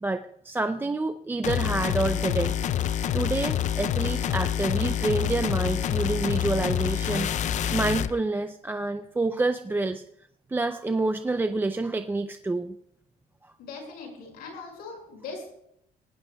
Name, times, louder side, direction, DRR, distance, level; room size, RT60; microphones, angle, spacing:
voice 1, 0.0-2.5 3.1-10.0 10.5-12.8, right 2 dB, 15° right, 8 dB, 0.5 m, -28 dB
sound 1, 1.4-8.1, left 10 dB, 50° left, 0.5 m, -27 dB
voice 2, 13.6-15.5, left 4 dB, 85° left, 1 dB, 5.8 m, -40 dB
19.5 x 17.0 x 2.3 m, 0.76 s
cardioid pair, 120°, 15 cm